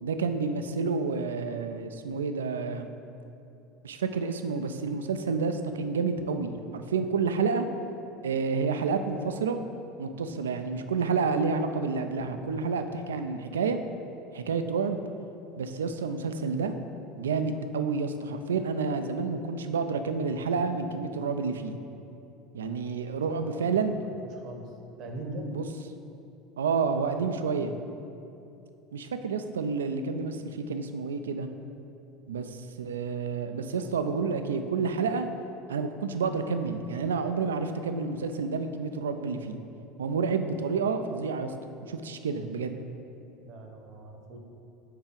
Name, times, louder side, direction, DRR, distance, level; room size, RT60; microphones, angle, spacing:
voice 1, 0.0-2.9 3.8-7.7 8.2-9.6 10.0-13.8 14.3-15.0 15.6-16.8 17.2-21.8 22.5-23.9 25.5-25.6 26.6-27.8 28.9-31.5 32.3-35.3 35.7-39.6 40.0-41.5 41.8-42.8, right 5 dB, 75° right, 8 dB, 0.3 m, -29 dB
voice 2, 23.3-23.7 24.3-24.7 25.0-25.5 43.5-44.4, right 2 dB, 50° right, 3 dB, 0.8 m, -41 dB
4.7 x 4.6 x 5.1 m, 2.7 s
figure-of-eight pair, 75°, 0 cm